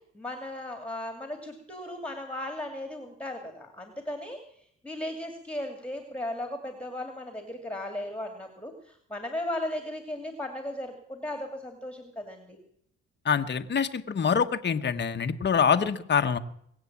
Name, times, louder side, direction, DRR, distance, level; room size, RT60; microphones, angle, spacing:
voice 1, 0.1-4.4 4.8-12.6, left 1 dB, 5° left, 5 dB, 2.4 m, -36 dB
voice 2, 13.3-16.4, left 6 dB, 35° left, 8 dB, 1.1 m, -25 dB
21.5 x 8.1 x 7.3 m, 0.68 s
cardioid pair, 90°, 30 cm